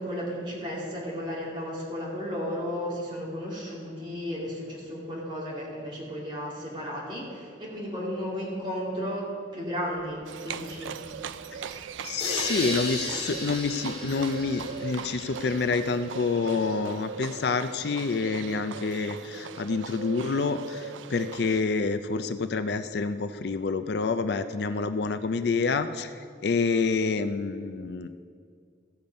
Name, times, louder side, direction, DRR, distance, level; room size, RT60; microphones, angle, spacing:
voice 1, 0.0-10.9, equal, 25° right, -5 dB, 2.6 m, -34 dB
sound 1, 9.8-10.2 10.5-10.7 11.0-11.3 11.6-11.9 12.1-12.4 12.7-12.9 13.3-14.1 14.4-14.6 14.9-15.2 15.5-15.6, equal, ahead, 3.4 m, -54 dB
Livestock farm animals working animals, 10.3-21.6, right 7 dB, 85° right, 0.4 m, -39 dB
voice 2, 12.0-28.1, left 4 dB, 60° left, 11 dB, 0.4 m, -28 dB
sound 2, 12.2-15.9, left 1 dB, 30° left, 3.2 m, -35 dB
14.5 x 7.0 x 5.3 m, 2.2 s
head